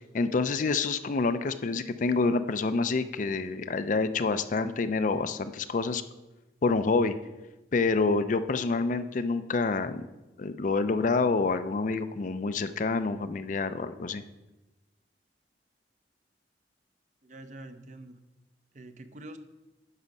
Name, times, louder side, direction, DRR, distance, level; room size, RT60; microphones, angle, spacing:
voice 1, 0.1-6.0 6.6-7.1 7.7-10.1 10.4-14.2, left 4 dB, 45° left, 11 dB, 0.4 m, -27 dB
voice 2, 17.2-18.2 18.7-19.4, right 1 dB, 45° right, 9 dB, 0.6 m, -45 dB
9.7 x 6.0 x 5.3 m, 1.1 s
head